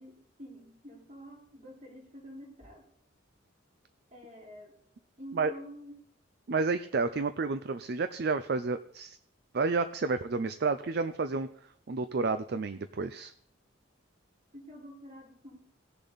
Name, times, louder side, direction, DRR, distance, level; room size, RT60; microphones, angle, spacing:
voice 1, 0.0-2.9 4.1-4.8 5.2-5.9 14.5-15.7, equal, 35° right, -1 dB, 3.2 m, -48 dB
voice 2, 6.5-9.2 9.5-11.5 11.9-13.3, right 4 dB, 50° right, 11 dB, 0.5 m, -30 dB
17.5 x 6.8 x 4.0 m, 0.68 s
head